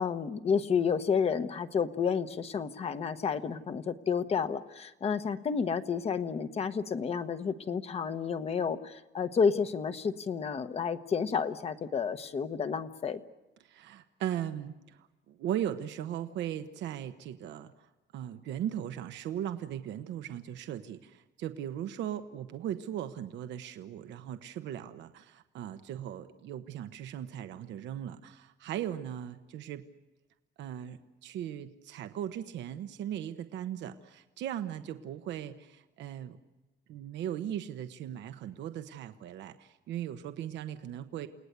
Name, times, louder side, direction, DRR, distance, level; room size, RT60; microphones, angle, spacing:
voice 1, 0.0-13.2, left 6 dB, 35° left, 10 dB, 1.1 m, -30 dB
voice 2, 13.6-17.7 18.1-29.8 30.6-36.4 36.9-41.3, right 10 dB, 75° right, 9 dB, 1.1 m, -38 dB
29.5 x 18.5 x 8.2 m, 1.1 s
cardioid pair, 155°, 19 cm